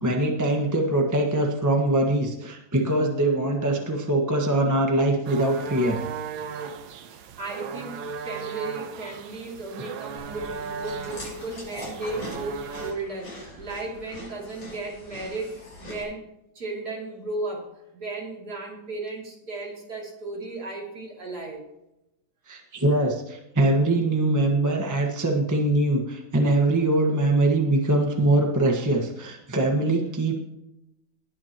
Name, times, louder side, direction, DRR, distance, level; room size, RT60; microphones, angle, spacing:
voice 1, 0.0-6.1 22.5-30.4, right 2 dB, 10° right, 0 dB, 1.2 m, -23 dB
sound 1, 5.2-12.9, right 6 dB, 85° right, 1.7 m, -37 dB
voice 2, 7.0-16.2 16.5-17.7 17.9-21.6, right 2 dB, 50° right, -2 dB, 3.4 m, -35 dB
Chewing mastication, 10.2-16.0, left 1 dB, 80° left, 5.9 m, -42 dB
19.5 x 9.7 x 3.0 m, 0.87 s
omnidirectional pair, 2.1 m